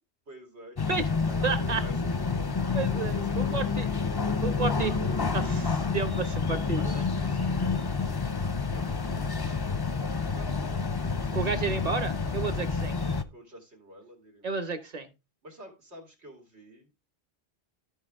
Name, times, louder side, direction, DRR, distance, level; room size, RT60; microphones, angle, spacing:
voice 1, 0.3-4.5 6.8-7.9 8.7-12.0 13.0-14.7 15.4-16.9, equal, 90° right, 1 dB, 2.7 m, -50 dB
sound 1, 0.8-13.2, left 4 dB, 30° left, 0.5 m, -29 dB
voice 2, 1.4-1.8 2.5-3.9 4.4-4.9 5.3-7.1 11.3-13.0 14.4-15.1, right 4 dB, 40° right, 10 dB, 1.1 m, -31 dB
13.5 x 4.7 x 3.6 m, 0.27 s
omnidirectional pair, 1.1 m